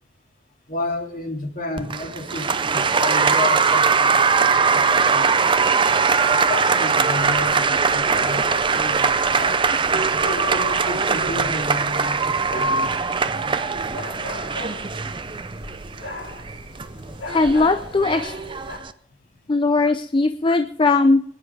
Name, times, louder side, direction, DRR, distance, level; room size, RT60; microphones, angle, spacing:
voice 1, 0.7-5.5 6.3-9.6 10.2-13.8 14.3-14.4, left 2 dB, 50° left, 3 dB, 2.7 m, -32 dB
Applause, 1.8-18.9, right 5 dB, 30° right, 0.6 m, -21 dB
sound 1, 7.2-18.8, left 2 dB, 85° left, 2.5 m, -39 dB
voice 2, 17.3-18.4 19.5-21.2, left 3 dB, 30° left, 10 dB, 0.5 m, -19 dB
27.5 x 10.0 x 3.4 m, 0.64 s
head